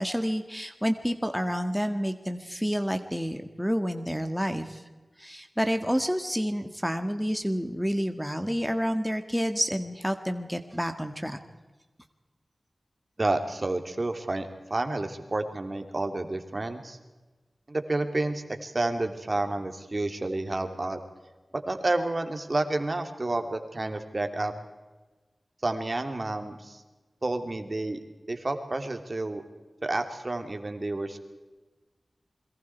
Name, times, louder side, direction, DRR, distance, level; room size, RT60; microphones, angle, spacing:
voice 1, 0.0-4.8 5.2-11.4, equal, ahead, 8 dB, 1.8 m, -29 dB
voice 2, 13.2-17.0 17.7-21.0 21.5-24.6 25.6-26.8 27.2-28.0 28.3-29.4 29.8-31.3, right 2 dB, 45° right, 6 dB, 2.7 m, -30 dB
28.0 x 22.5 x 4.6 m, 1.2 s
cardioid pair, 40°, 0 cm